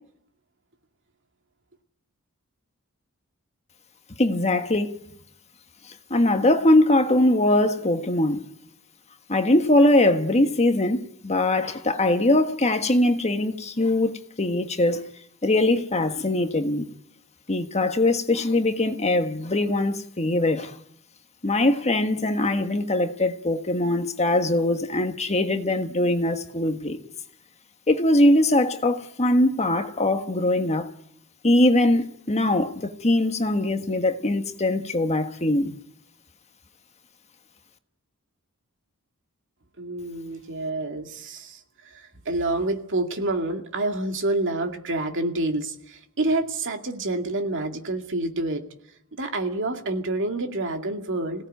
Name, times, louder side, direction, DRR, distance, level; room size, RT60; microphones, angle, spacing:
voice 1, 4.2-5.0 6.1-8.5 9.3-15.1 15.4-16.9 17.5-20.7 21.4-27.0 27.9-30.9 31.4-35.8, left 1 dB, 30° left, 1.5 m, -22 dB
voice 2, 39.8-48.6 49.2-51.5, right 2 dB, 60° right, 2.3 m, -28 dB
26.0 x 17.5 x 9.3 m
head